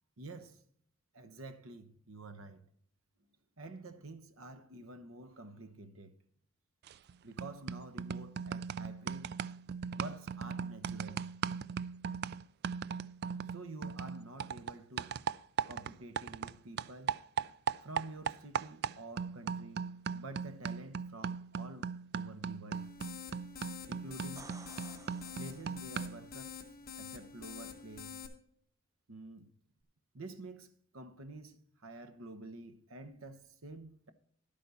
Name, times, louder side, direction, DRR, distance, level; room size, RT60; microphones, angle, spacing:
voice 1, 0.2-0.6 1.1-2.7 3.6-6.2 7.2-9.4 10.0-11.2 13.5-15.1 15.7-17.2 17.8-22.9 23.9-24.5 25.4-26.6 27.0-28.2 29.1-29.5 30.1-34.1, right 2 dB, 80° right, 1.1 m, -49 dB
sound 1, 6.9-7.1 7.4-16.5 16.8-26.3, right 7 dB, 50° right, 0.3 m, -39 dB
sound 2, 22.7-28.3, left 7 dB, 45° left, 1.4 m, -47 dB
sound 3, 24.2-26.1 29.8-29.9, right 3 dB, 15° right, 0.7 m, -55 dB
11.0 x 8.5 x 4.2 m
head